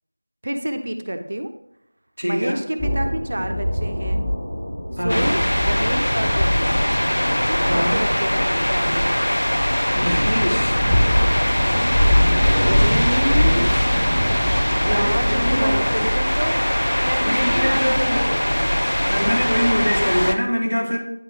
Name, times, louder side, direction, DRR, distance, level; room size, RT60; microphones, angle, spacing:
voice 1, 0.4-1.5 2.2-4.2 5.0-6.9 7.5-9.3 12.6-13.7 14.7-16.6 17.0-18.2, right 1 dB, 35° right, 7 dB, 0.4 m, -28 dB
voice 2, 2.2-2.6 5.0-5.4 7.7-8.1 9.9-10.8 13.7-13.9 14.8-15.8 17.2-18.4 19.1-21.0, equal, 80° left, -1 dB, 1.8 m, -24 dB
sound 1, 2.8-19.0, equal, ahead, 1.2 m, -24 dB
sound 2, 5.1-20.4, equal, 65° left, 0.6 m, -21 dB
9.1 x 3.4 x 3.8 m, 0.79 s
figure-of-eight pair, 175°, 0 cm